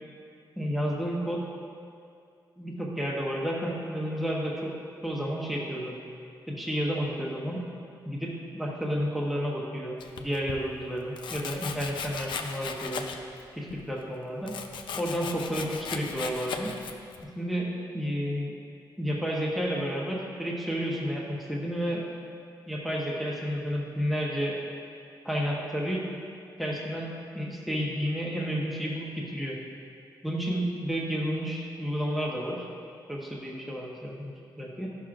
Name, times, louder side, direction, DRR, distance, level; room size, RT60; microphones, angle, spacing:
voice 1, 0.6-1.4 2.6-4.7 5.0-6.0 6.5-7.6 8.1-13.1 13.5-14.6 15.0-16.7 17.2-18.5 19.0-22.0 22.7-24.6 25.2-26.1 26.6-29.6 30.2-32.6 33.1-34.9, equal, ahead, -3 dB, 0.8 m, -31 dB
Domestic sounds home sounds, 10.0-10.6 11.2-13.4 13.7-17.2, left 6 dB, 80° left, 0.5 m, -37 dB
12.5 x 5.9 x 2.5 m, 2.3 s
wide cardioid pair, 145°, 8 cm